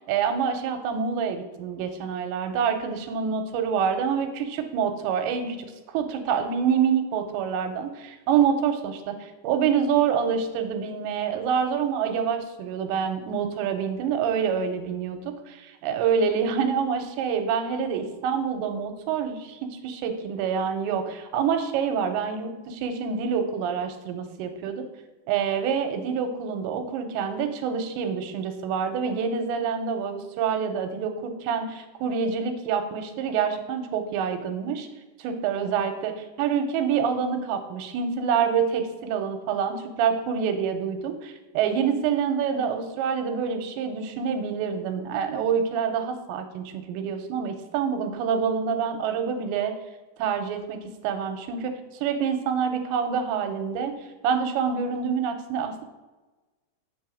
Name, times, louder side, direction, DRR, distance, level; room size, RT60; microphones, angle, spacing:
voice 1, 0.0-5.7 5.9-24.9 25.3-34.9 35.2-49.7 50.2-50.8 51.0-53.9 54.2-55.8, right 7 dB, 85° right, 7 dB, 2.9 m, -26 dB
7.8 x 4.8 x 6.4 m, 1.2 s
omnidirectional pair, 5.2 m